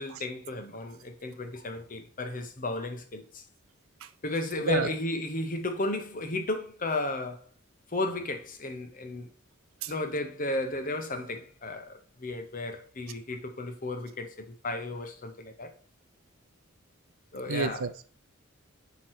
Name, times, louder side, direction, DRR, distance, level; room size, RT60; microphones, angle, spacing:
voice 1, 0.0-3.4 4.2-7.5 7.9-9.3 9.9-15.7 17.3-17.9, left 2 dB, 40° left, 0.9 m, -34 dB
voice 2, 17.5-18.0, right 5 dB, 85° right, 0.5 m, -29 dB
7.5 x 3.1 x 4.6 m
head